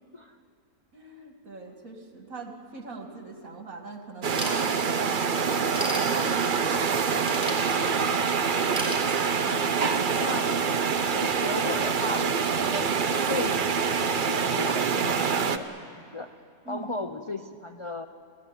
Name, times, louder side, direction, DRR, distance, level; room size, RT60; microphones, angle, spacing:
voice 1, 0.9-8.1 16.6-16.9, right 3 dB, 65° right, 4 dB, 2.6 m, -42 dB
sound 1, 4.2-15.6, right 6 dB, 40° right, 0.8 m, -25 dB
Ratchet pawl / Tools, 4.3-5.1 5.5-6.7 7.2-8.2 8.7-9.7, equal, 5° right, 4.7 m, -35 dB
voice 2, 9.3-10.6 11.0-16.3 16.7-18.1, left 2 dB, 35° left, 6 dB, 0.5 m, -36 dB
25.5 x 17.0 x 9.8 m, 2.3 s
omnidirectional pair, 1.6 m